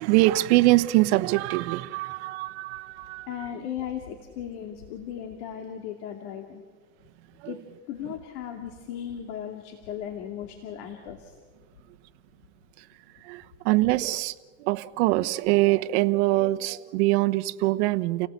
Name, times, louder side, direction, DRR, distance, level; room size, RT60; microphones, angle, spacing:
voice 1, 0.0-3.3 13.3-14.3 14.6-18.3, right 19 dB, 70° right, 10 dB, 1.1 m, -23 dB
voice 2, 3.3-6.6 7.4-7.6 7.9-11.3, left 9 dB, 75° left, 3 dB, 2.6 m, -36 dB
29.5 x 18.0 x 8.2 m, 1.5 s
supercardioid pair, 150°, 34 cm